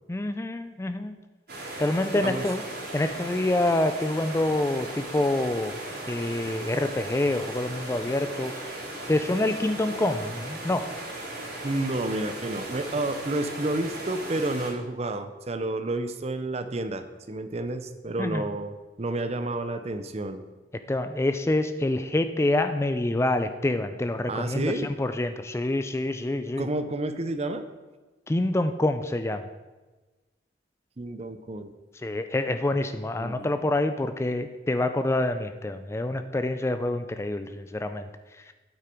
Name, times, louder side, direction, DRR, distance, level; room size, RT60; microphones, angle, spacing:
voice 1, 0.1-1.1 1.8-2.6 2.9-5.8 6.1-8.7 9.1-10.9 18.2-18.4 20.9-24.7 25.0-26.7 28.3-29.4 32.0-38.0, left 1 dB, 15° left, 9 dB, 0.3 m, -26 dB
sound 1, 1.5-14.7, right 1 dB, 60° right, 3.5 m, -37 dB
voice 2, 11.6-20.4 24.3-24.9 26.6-27.7 31.0-31.7 33.2-33.7, right 2 dB, 35° right, 10 dB, 0.6 m, -30 dB
8.8 x 8.4 x 4.5 m, 1.2 s
head